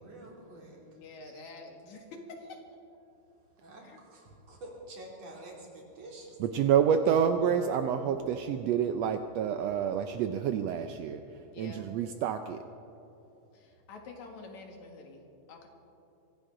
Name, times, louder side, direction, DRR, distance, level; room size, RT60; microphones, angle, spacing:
voice 1, 0.0-1.4 3.6-6.4 11.4-11.6, right 1 dB, 60° right, -2 dB, 4.1 m, -48 dB
voice 2, 0.9-2.6 3.8-4.0 11.5-11.9 13.5-15.2 15.5-15.7, left 3 dB, 75° left, 2 dB, 3.1 m, -47 dB
voice 3, 6.4-11.2 11.6-12.6, right 8 dB, 75° right, 8 dB, 1.6 m, -28 dB
23.5 x 16.0 x 3.8 m, 2.9 s
omnidirectional pair, 3.3 m